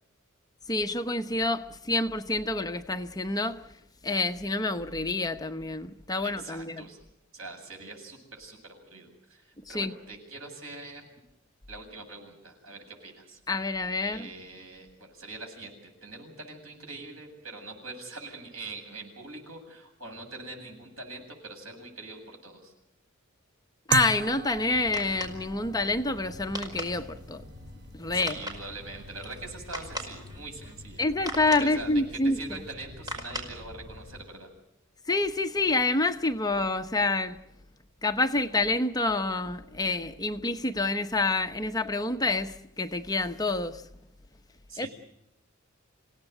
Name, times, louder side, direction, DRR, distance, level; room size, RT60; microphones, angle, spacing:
voice 1, 0.7-3.6 4.0-6.9 9.7-9.9 13.5-14.3 23.9-27.4 27.9-28.4 31.0-32.4 35.1-37.4 38.0-43.8 44.8-44.9, left 2 dB, 20° left, 0.9 m, -28 dB
voice 2, 6.2-7.0 7.3-11.1 11.7-13.4 14.0-15.7 16.0-22.7 28.1-31.0 31.6-34.5 44.7-44.9, right 3 dB, 75° right, 7.7 m, -43 dB
sound 1, 23.9-32.7, right 6 dB, 55° right, 0.9 m, -39 dB
sound 2, 24.6-34.2, equal, 20° right, 5.0 m, -41 dB
28.0 x 17.5 x 8.0 m
head